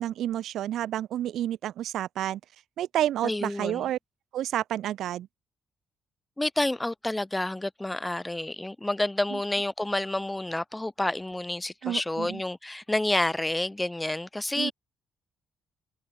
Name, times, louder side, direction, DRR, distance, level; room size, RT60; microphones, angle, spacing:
voice 1, 0.0-2.4 2.8-4.0 4.3-5.3 9.3-9.4 11.8-12.4 14.6-14.7, right 12 dB, 75° right, 0.7 m, -30 dB
voice 2, 3.2-3.9 6.4-14.7, left 1 dB, 10° left, 0.6 m, -29 dB
cardioid pair, 120°, 0 cm